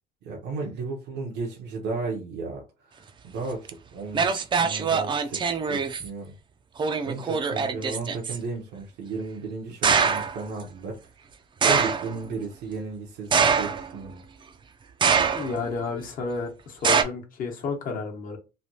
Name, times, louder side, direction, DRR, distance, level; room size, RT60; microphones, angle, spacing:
voice 1, 0.2-6.3 7.0-11.0 11.6-14.2, right 4 dB, 85° right, 0.9 m, -34 dB
sound 1, 3.7-3.8 4.1-6.1 6.8-8.4 9.8-10.4 11.6-12.2 13.3-14.1 15.0-15.7 16.8-17.0, right 6 dB, 30° right, 0.4 m, -23 dB
voice 2, 15.3-18.4, left 4 dB, 55° left, 1.0 m, -31 dB
3.2 x 2.3 x 2.7 m
cardioid pair, 110°, 17 cm